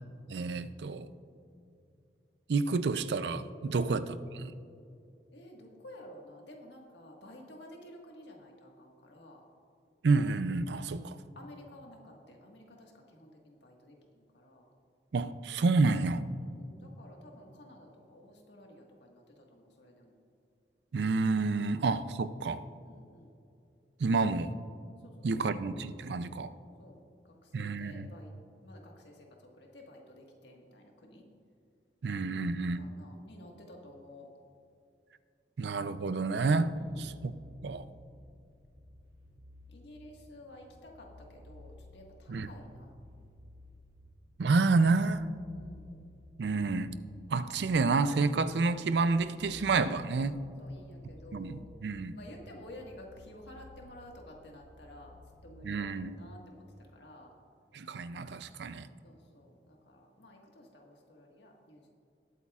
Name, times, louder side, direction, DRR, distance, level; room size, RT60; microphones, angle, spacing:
voice 1, 0.3-1.1 2.5-4.5 10.0-11.2 15.1-16.2 20.9-22.6 24.0-24.5 25.2-26.5 27.5-28.1 32.0-32.8 35.6-37.3 37.6-37.9 42.3-42.5 44.4-45.3 46.4-46.9 47.3-50.4 51.3-52.2 55.6-56.2 57.7-58.9, right 3 dB, 75° right, 13 dB, 0.4 m, -29 dB
voice 2, 5.3-9.4 11.3-14.7 16.4-20.1 21.6-21.8 22.8-23.3 25.0-25.4 26.8-31.2 32.7-34.3 36.8-37.1 39.7-42.9 45.5-46.0 50.6-51.6 52.1-55.2 55.4-57.3 59.0-61.9, left 1 dB, 80° left, 0 dB, 1.6 m, -52 dB
sound 1, 36.7-55.7, left 2 dB, 20° right, 2.3 m, -56 dB
20.0 x 8.3 x 2.4 m, 2.6 s
head